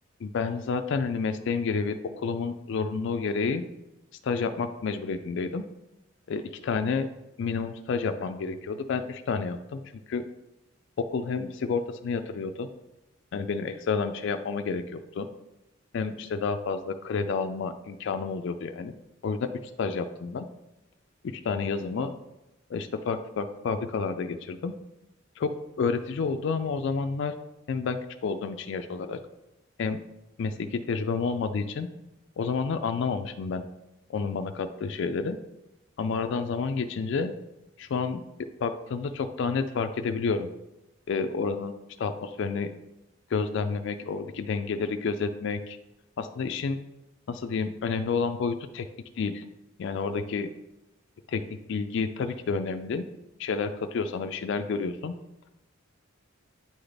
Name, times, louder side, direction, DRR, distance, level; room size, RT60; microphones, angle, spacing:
voice 1, 0.2-3.6 4.2-5.6 6.3-7.1 7.4-9.8 10.1-10.2 11.0-12.7 13.3-15.3 15.9-18.9 19.2-19.5 19.8-20.5 21.2-22.1 22.7-24.7 25.4-25.5 25.8-27.3 27.7-29.2 29.8-30.0 30.4-31.9 32.4-33.6 34.1-35.4 36.0-37.3 37.8-38.2 38.6-40.5 41.1-41.7 42.0-42.7 43.3-45.8 46.2-46.8 47.3-48.9 49.2-49.4 49.8-50.5 51.3-51.4 51.7-53.0 53.4-55.2, left 5 dB, 60° left, 8 dB, 0.3 m, -29 dB
8.7 x 3.9 x 3.3 m, 0.96 s
head